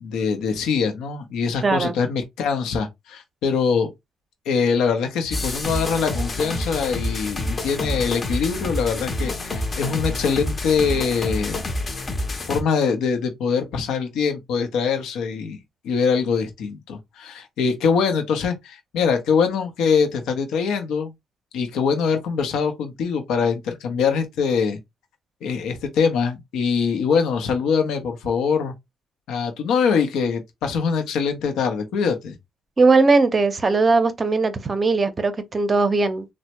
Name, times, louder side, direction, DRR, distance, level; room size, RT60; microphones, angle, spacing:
voice 1, 0.0-3.9 4.5-11.6 12.4-15.6 15.8-21.1 21.5-24.8 25.4-28.7 29.3-32.4, left 6 dB, 85° left, 0.6 m, -23 dB
voice 2, 1.6-1.9 32.8-36.2, right 3 dB, 30° right, 0.6 m, -19 dB
sound 1, 5.3-12.6, left 1 dB, 35° left, 0.6 m, -28 dB
3.2 x 2.1 x 2.8 m
cardioid pair, 90°, 0 cm